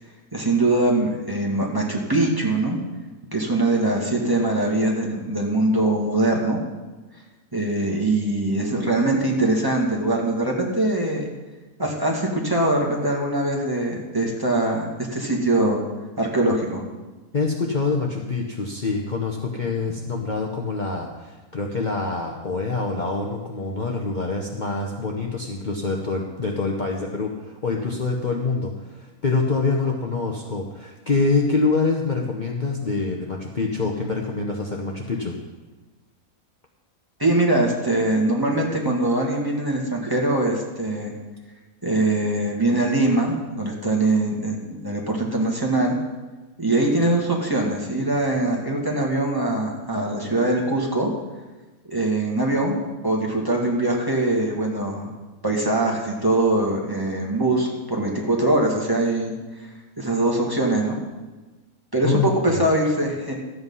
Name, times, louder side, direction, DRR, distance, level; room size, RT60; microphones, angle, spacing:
voice 1, 0.3-2.8 3.3-6.6 7.5-11.3 11.8-15.8 16.2-16.9 37.2-41.1 41.8-46.0 46.6-51.1 51.9-52.8 53.0-55.1 55.4-59.3 60.0-61.0 61.9-63.3, right 2 dB, 15° right, -2 dB, 1.8 m, -22 dB
voice 2, 17.3-35.4 62.0-62.6, left 3 dB, 35° left, -1 dB, 1.0 m, -25 dB
13.0 x 8.2 x 5.5 m, 1.2 s
omnidirectional pair, 1.5 m